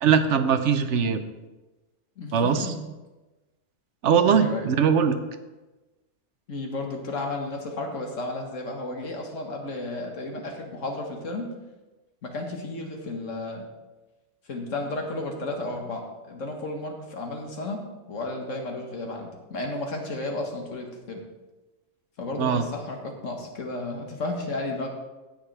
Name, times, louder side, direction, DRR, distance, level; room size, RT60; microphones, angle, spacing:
voice 1, 0.0-1.2 2.3-2.6 4.0-5.2 22.4-22.6, right 7 dB, 70° right, 9 dB, 1.0 m, -21 dB
voice 2, 2.2-2.8 4.2-4.7 6.5-11.5 12.2-13.7 14.5-17.8 18.1-21.2 22.2-24.9, left 2 dB, 80° left, 2 dB, 1.8 m, -33 dB
16.5 x 6.4 x 3.3 m, 1.1 s
omnidirectional pair, 1.3 m